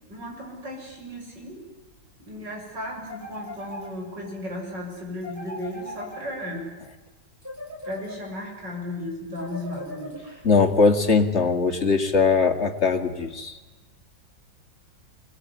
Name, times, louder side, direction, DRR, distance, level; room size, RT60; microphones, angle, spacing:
voice 1, 0.1-1.6 2.3-6.7 7.8-10.5, left 1 dB, 70° right, 0 dB, 7.6 m, -35 dB
sound 1, 3.1-4.3 5.2-6.7 7.4-8.6 9.4-10.6, left 1 dB, 10° right, 3.3 m, -40 dB
voice 2, 10.4-13.6, left 4 dB, 40° left, 5 dB, 2.6 m, -20 dB
25.5 x 20.0 x 9.8 m, 1.1 s
omnidirectional pair, 1.9 m